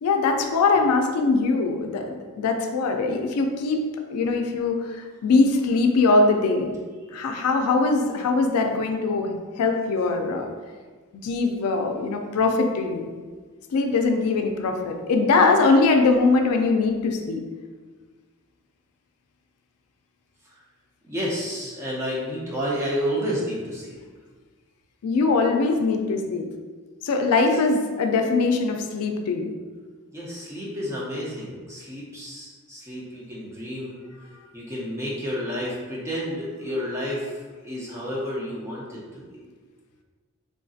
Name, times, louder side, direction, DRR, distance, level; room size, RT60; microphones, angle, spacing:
voice 1, 0.0-3.8 4.1-6.7 7.1-10.5 11.1-13.1 13.7-17.4 25.0-26.5 27.0-29.5, left 3 dB, 90° left, 4 dB, 0.4 m, -22 dB
voice 2, 21.0-24.0 30.1-34.0 34.5-37.4 37.6-39.4, equal, 10° right, -6 dB, 0.6 m, -30 dB
3.7 x 2.5 x 2.4 m, 1.4 s
head